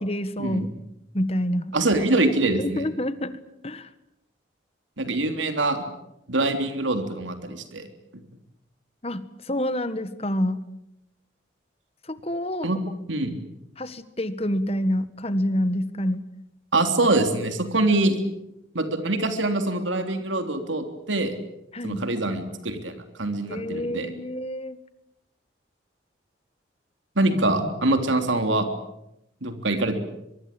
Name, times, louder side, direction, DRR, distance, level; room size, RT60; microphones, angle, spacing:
voice 1, 0.0-0.7 1.1-1.7 2.6-3.9 9.0-10.6 12.0-13.0 13.8-16.3 21.7-22.0 23.5-24.8, left 1 dB, 30° left, 13 dB, 1.5 m, -28 dB
voice 2, 1.7-2.8 5.0-5.8 6.3-7.9 12.6-12.8 13.1-13.4 16.7-18.2 18.7-21.4 21.8-24.1 27.1-28.7 29.4-30.0, right 2 dB, 85° right, 7 dB, 3.4 m, -24 dB
24.0 x 23.5 x 8.8 m, 0.84 s
head